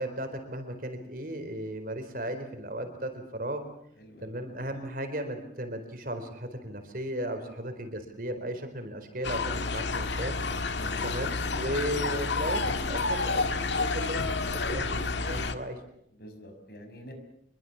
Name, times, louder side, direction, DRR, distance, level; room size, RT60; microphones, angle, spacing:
voice 1, 0.0-3.6 4.2-10.4 11.0-14.3 14.7-15.8, right 1 dB, 50° right, 7 dB, 4.3 m, -35 dB
voice 2, 4.0-4.4 7.4-7.6 10.7-11.1 16.1-17.1, equal, 55° left, 6 dB, 5.9 m, -47 dB
sound 1, 9.2-15.5, left 3 dB, 75° left, 1.8 m, -30 dB
26.5 x 22.0 x 7.3 m, 0.71 s
head